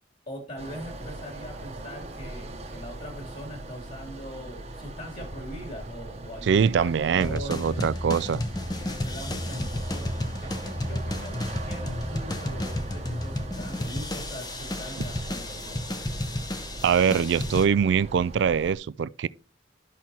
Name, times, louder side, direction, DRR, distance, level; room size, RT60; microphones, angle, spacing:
voice 1, 0.3-7.9 8.8-15.8, equal, 45° left, 2.8 m, -41 dB
sound 1, 0.6-18.7, right 2 dB, 35° right, 1.0 m, -40 dB
voice 2, 6.4-8.4 16.8-19.3, right 7 dB, 65° right, 0.3 m, -23 dB
sound 2, 7.2-17.6, left 1 dB, 20° left, 0.7 m, -32 dB
13.0 x 5.9 x 2.9 m
head